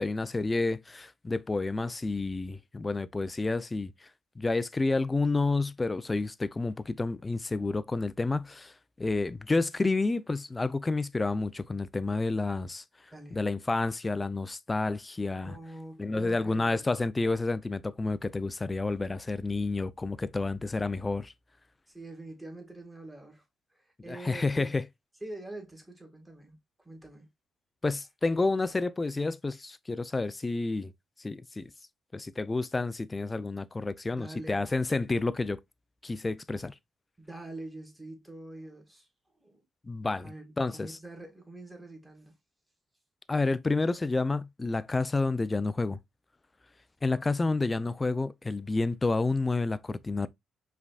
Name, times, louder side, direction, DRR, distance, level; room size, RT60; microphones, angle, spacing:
voice 1, 0.0-3.9 4.4-8.7 9.0-12.8 13.3-15.6 16.0-21.3 24.1-24.8 27.8-30.9 31.2-31.7 32.1-35.6 36.0-36.7 39.9-41.0 43.3-46.0 47.0-50.3, left 3 dB, 20° left, 0.4 m, -30 dB
voice 2, 13.1-13.4 15.4-16.9 21.9-23.4 23.7-24.7 25.2-27.3 34.1-34.7 37.2-39.1 39.4-39.6 40.2-42.3, right 2 dB, 10° right, 1.8 m, -45 dB
5.0 x 3.4 x 2.3 m
cardioid pair, 90°, 0 cm